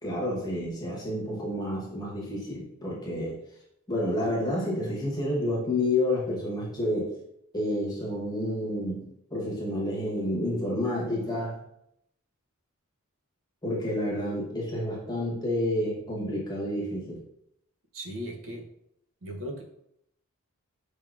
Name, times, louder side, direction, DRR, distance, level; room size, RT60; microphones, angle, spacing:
voice 1, 0.0-3.3 3.9-7.1 7.5-11.6 13.6-17.2, left 1 dB, 15° left, -4 dB, 1.0 m, -29 dB
voice 2, 17.9-18.6 19.2-19.6, equal, 60° right, 1 dB, 0.7 m, -37 dB
4.6 x 3.5 x 2.4 m, 0.78 s
head